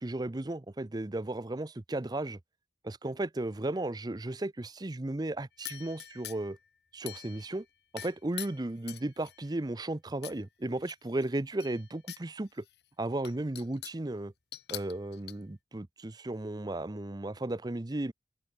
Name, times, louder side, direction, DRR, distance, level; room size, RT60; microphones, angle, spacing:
voice 1, 0.0-2.4 2.8-6.6 6.9-7.7 7.9-12.6 13.0-14.3 14.7-18.1, right 2 dB, 25° right, 0.6 m, -35 dB
sound 1, 5.6-6.6 7.1-7.6 8.0-9.5 10.2-10.4 10.8-12.2 12.6-12.7 13.2-14.1 14.5-15.3, left 13 dB, 65° left, 4.1 m, -44 dB
open air
head